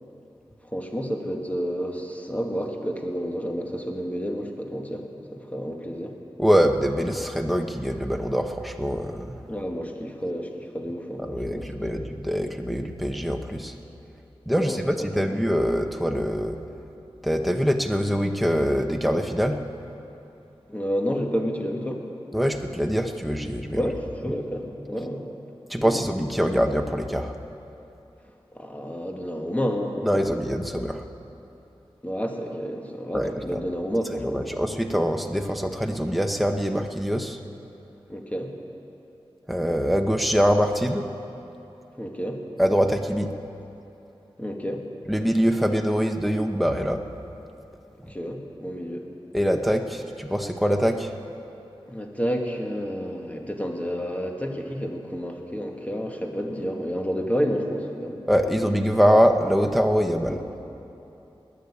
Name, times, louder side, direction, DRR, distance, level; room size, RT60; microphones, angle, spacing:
voice 1, 0.7-6.1 9.5-11.7 12.0-12.1 14.6-14.8 15.3-15.4 20.7-22.0 23.7-25.2 25.7-26.0 28.5-30.3 32.0-34.5 38.1-38.5 42.0-42.4 44.4-44.8 48.1-49.1 51.9-58.3 60.2-60.4, equal, 15° left, 2 dB, 1.9 m, -30 dB
voice 2, 6.4-9.4 11.2-13.7 14.5-16.6 17.2-19.6 22.3-23.9 25.7-27.3 30.0-31.0 33.1-33.6 34.2-37.4 39.5-41.1 42.6-43.3 45.1-47.0 49.3-51.1 58.3-60.4, equal, ahead, 5 dB, 1.0 m, -24 dB
20.0 x 6.8 x 9.7 m, 3.0 s
wide cardioid pair, 60°, 10 cm